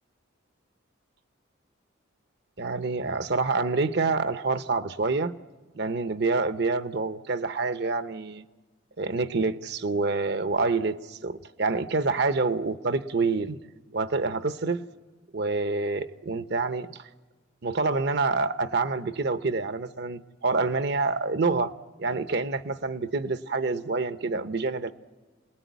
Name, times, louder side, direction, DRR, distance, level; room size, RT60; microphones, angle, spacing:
voice 1, 2.6-5.4 5.7-8.5 9.0-13.6 13.9-14.9 15.3-17.1 17.6-21.7 22.0-24.9, right 3 dB, 55° right, 0.9 m, -27 dB
28.5 x 20.0 x 9.4 m
head